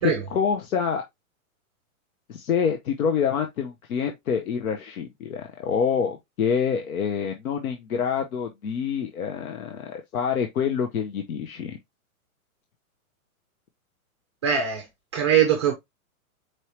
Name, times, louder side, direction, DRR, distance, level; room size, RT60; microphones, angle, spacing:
voice 1, 0.0-1.0 2.3-11.8, left 7 dB, 75° left, 1.0 m, -26 dB
voice 2, 14.4-14.9 15.1-15.7, right 8 dB, 20° right, 0.4 m, -21 dB
4.6 x 3.3 x 2.9 m
hypercardioid pair, 165°, 42 cm